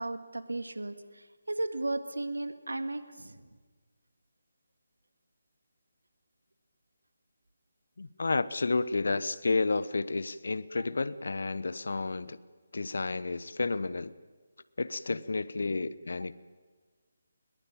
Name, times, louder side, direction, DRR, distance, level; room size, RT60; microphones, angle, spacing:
voice 1, 0.0-3.4, right 2 dB, 80° right, 10 dB, 1.9 m, -35 dB
voice 2, 8.0-12.4 12.7-14.1 14.8-16.4, left 3 dB, 65° left, 17 dB, 1.0 m, -31 dB
21.5 x 21.5 x 9.0 m, 1.4 s
figure-of-eight pair, 150°, 0 cm